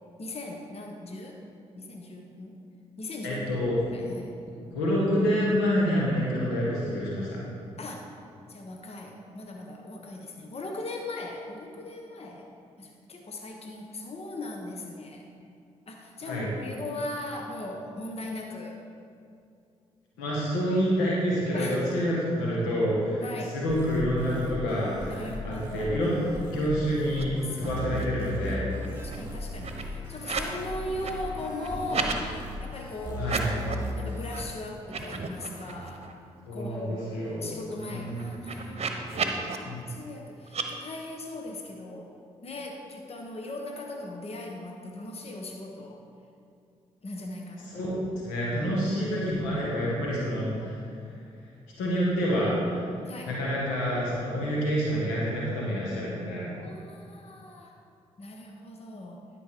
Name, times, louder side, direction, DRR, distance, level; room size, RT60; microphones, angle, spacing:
voice 1, 0.2-1.4 1.8-2.6 3.0-3.6 3.9-4.4 7.8-8.2 8.5-12.5 12.8-15.3 15.9-18.8 21.5-21.8 23.2-23.6 25.1-26.4 27.5-27.7 28.0-28.1 28.8-32.2 32.6-33.4 33.6-36.1 36.5-38.8 39.2-42.1 42.4-46.0 47.0-47.9 48.5-48.7 53.0-53.3 56.5-57.7 58.2-59.3, left 2 dB, 45° left, 1 dB, 1.2 m, -39 dB
voice 2, 3.2-3.7 4.5-7.4 16.2-16.5 20.2-23.2 23.5-26.1 26.3-28.7 33.2-33.5 36.5-37.5 37.9-38.3 39.7-39.8 47.7-47.9 48.2-50.8 51.8-56.5, equal, 90° left, -5 dB, 1.7 m, -28 dB
sound 1, 23.7-34.4, equal, 15° right, 2.5 m, -37 dB
sound 2, 27.1-27.2 27.5-28.2 28.5-30.6 30.9-32.2 33.1-33.9 34.3-34.4 34.8-36.1 36.5-36.6 36.9-39.6 40.5-40.7, right 4 dB, 45° right, 1.0 m, -35 dB
11.0 x 5.3 x 5.0 m, 2.4 s
hypercardioid pair, 40°, 14 cm